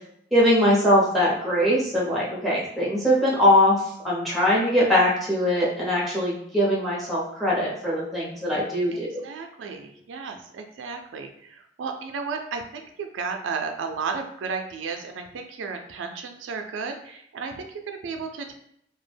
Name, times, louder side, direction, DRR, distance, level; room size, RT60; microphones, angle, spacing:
voice 1, 0.3-3.8 4.0-9.2, left 1 dB, ahead, -6 dB, 0.6 m, -21 dB
voice 2, 8.9-18.5, right 5 dB, 80° right, 5 dB, 0.3 m, -33 dB
2.2 x 2.0 x 3.3 m, 0.71 s
head